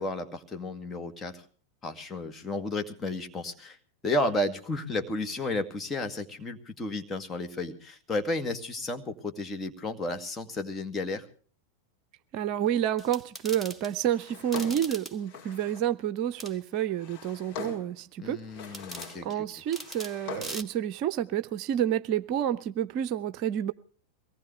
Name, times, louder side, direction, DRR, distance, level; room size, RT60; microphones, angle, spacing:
voice 1, 0.0-1.4 1.8-3.8 4.0-11.3 18.2-19.4, left 2 dB, 15° left, 5 dB, 2.3 m, -32 dB
voice 2, 12.3-18.4 19.2-23.7, right 10 dB, 40° right, 14 dB, 0.7 m, -29 dB
sound 1, 13.0-13.9 14.5-15.2 16.4-16.6 18.7-19.1 19.7-20.2 20.4-20.6, right 1 dB, ahead, 1.8 m, -40 dB
Drawer open or close, 14.1-15.9 16.7-18.0 18.4-19.3 19.6-20.7, left 6 dB, 45° left, 7.3 m, -42 dB
23.5 x 18.5 x 3.3 m, 0.42 s
figure-of-eight pair, 90°, 0 cm